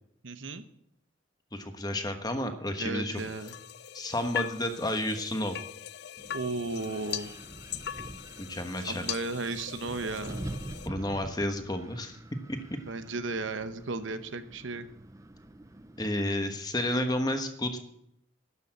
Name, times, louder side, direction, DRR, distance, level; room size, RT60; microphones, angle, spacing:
voice 1, 0.2-0.6 2.8-3.6 6.3-7.3 8.9-10.5 12.9-14.9, right 3 dB, 70° right, 10 dB, 0.9 m, -35 dB
voice 2, 1.5-3.2 3.9-5.6 8.4-9.1 10.8-12.2 12.5-12.6 16.0-17.8, left 1 dB, 20° left, 7 dB, 1.2 m, -31 dB
sound 1, 3.2-10.9, left 10 dB, 50° left, 0.4 m, -40 dB
Wind, 6.2-16.1, right 1 dB, 15° right, 0.5 m, -45 dB
12.0 x 6.8 x 8.7 m, 0.75 s
head